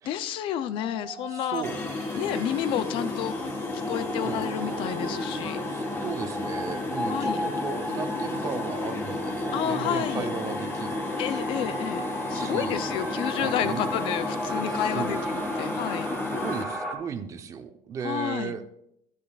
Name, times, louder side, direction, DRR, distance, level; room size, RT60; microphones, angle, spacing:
voice 1, 0.0-1.6 2.1-3.3 3.9-5.6 7.1-7.4 9.5-10.3 11.2-16.1 18.0-18.5, left 10 dB, 50° left, 13 dB, 0.5 m, -30 dB
sound 1, 0.7-16.9, equal, ahead, 1.7 m, -35 dB
voice 2, 1.3-1.8 4.2-4.5 5.7-11.4 12.3-12.8 13.4-13.8 14.7-15.2 16.3-18.6, right 7 dB, 30° right, 9 dB, 0.7 m, -36 dB
sound 2, 1.5-7.5, right 10 dB, 70° right, 1.4 m, -47 dB
sound 3, 1.6-16.6, left 3 dB, 20° left, 1.1 m, -33 dB
12.0 x 10.0 x 2.4 m, 0.74 s
cardioid pair, 155°, 11 cm